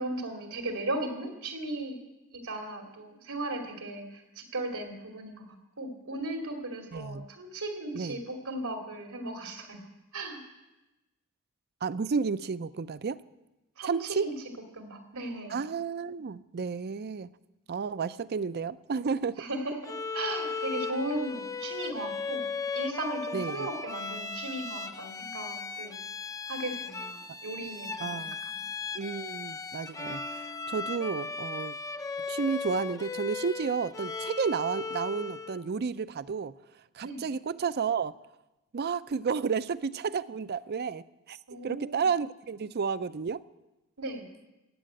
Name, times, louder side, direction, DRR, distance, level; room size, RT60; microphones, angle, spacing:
voice 1, 0.0-2.0 2.3-9.8 10.1-10.4 13.8-14.3 14.7-15.6 19.4-22.5 22.7-26.0 26.5-28.6 37.0-37.2 41.5-42.0 44.0-44.3, right 1 dB, 85° right, 3 dB, 2.8 m, -36 dB
voice 2, 6.9-7.3 7.9-8.2 11.8-13.2 13.8-14.3 15.5-17.3 17.7-19.5 23.3-23.7 27.3-27.4 28.0-28.4 28.9-31.8 32.3-36.5 36.9-38.2 38.7-41.4 41.6-43.4, right 5 dB, 45° right, 16 dB, 0.5 m, -32 dB
Bowed string instrument, 19.8-35.6, left 4 dB, 15° left, 0.5 m, -37 dB
15.0 x 9.2 x 8.8 m, 1.0 s
head